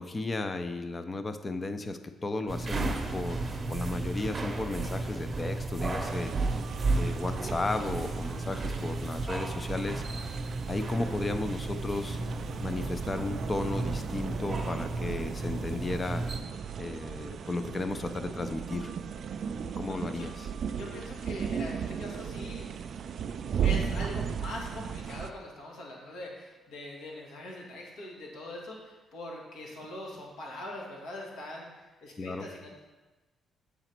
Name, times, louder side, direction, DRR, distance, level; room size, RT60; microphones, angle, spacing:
voice 1, 0.0-6.3 7.0-10.0 10.7-12.2 12.6-16.3 16.8-18.9 19.8-20.5 32.2-32.5, left 2 dB, 30° left, 9 dB, 0.5 m, -34 dB
sound 1, 2.5-16.4, right 2 dB, 35° right, 0.8 m, -34 dB
sound 2, 6.0-25.3, right 7 dB, 60° right, 0.3 m, -37 dB
voice 2, 20.8-22.7 23.6-32.8, left 1 dB, 80° left, -2 dB, 1.6 m, -42 dB
6.9 x 4.0 x 4.4 m, 1.2 s
cardioid pair, 90°, 0 cm